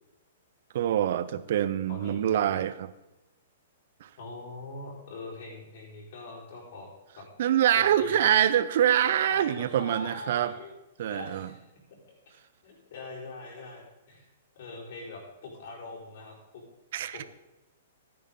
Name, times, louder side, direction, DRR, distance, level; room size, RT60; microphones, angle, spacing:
voice 1, 0.7-2.9 4.0-4.1 7.4-10.5 11.0-11.5 16.9-17.2, right 10 dB, 55° right, 15 dB, 0.6 m, -25 dB
voice 2, 1.9-2.3 4.2-6.9 7.2-7.3 7.8-8.3 9.3-10.7 11.0-11.6 11.9-12.0 12.3-12.4 12.6-14.2 14.5-16.6 17.1-17.3, left 3 dB, 55° left, -4 dB, 4.2 m, -42 dB
14.0 x 9.6 x 3.7 m, 0.99 s
figure-of-eight pair, 110°, 0 cm